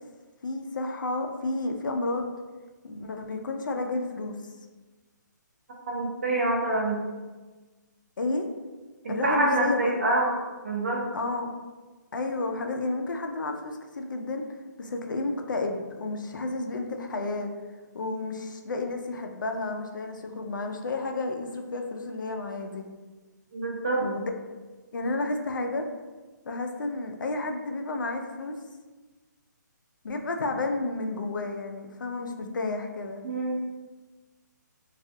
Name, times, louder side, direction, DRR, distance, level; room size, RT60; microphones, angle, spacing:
voice 1, 0.4-2.3 2.8-4.4 8.2-8.4 9.1-10.0 11.1-11.5 12.1-14.4 14.8-17.5 17.9-22.8 24.0-24.3 24.9-25.9 26.5-28.5 30.0-33.2, left 2 dB, 80° left, 4 dB, 0.4 m, -31 dB
voice 2, 5.9-7.0 9.0-10.3 10.6-11.0 23.5-24.0 33.2-33.6, right 2 dB, 45° right, -3 dB, 0.7 m, -26 dB
2.3 x 2.2 x 2.6 m, 1.3 s
hypercardioid pair, 175°, 10 cm